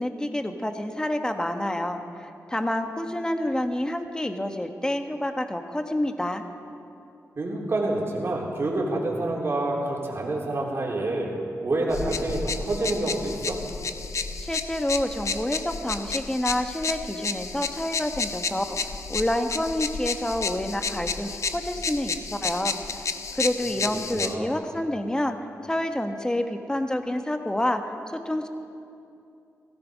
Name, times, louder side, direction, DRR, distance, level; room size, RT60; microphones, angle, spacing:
voice 1, 0.0-6.4 14.4-18.8 19.1-22.8 23.3-25.4 25.6-27.8 28.1-28.5, left 1 dB, 10° left, 6 dB, 1.2 m, -28 dB
voice 2, 7.4-11.3 11.6-13.6 23.9-24.5, right 2 dB, 45° right, -3 dB, 3.6 m, -28 dB
sound 1, 11.9-24.3, left 4 dB, 60° left, 0.8 m, -31 dB
16.5 x 15.5 x 5.2 m, 2.6 s
cardioid pair, 65°, 6 cm